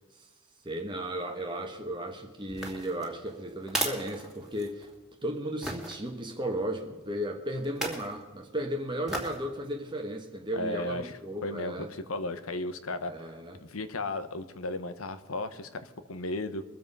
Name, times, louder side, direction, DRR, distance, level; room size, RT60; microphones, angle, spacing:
voice 1, 0.6-4.9 5.2-11.9 13.1-13.6, right 1 dB, 20° right, 3 dB, 1.1 m, -35 dB
sound 1, 2.5-4.9 5.6-6.0 7.6-8.1 9.1-9.4 9.9-10.0, right 1 dB, ahead, 2.4 m, -35 dB
voice 2, 10.5-13.3 13.6-16.6, left 2 dB, 85° left, 11 dB, 1.1 m, -35 dB
23.0 x 7.7 x 5.4 m, 1.3 s
head